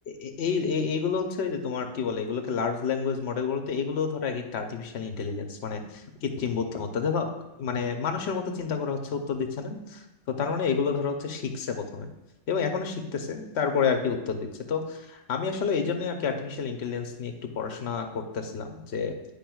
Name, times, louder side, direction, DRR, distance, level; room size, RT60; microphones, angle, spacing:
voice 1, 0.1-7.3 7.6-12.1 12.5-19.2, left 5 dB, 65° left, 5 dB, 1.0 m, -29 dB
10.5 x 5.0 x 2.3 m, 0.97 s
omnidirectional pair, 1.3 m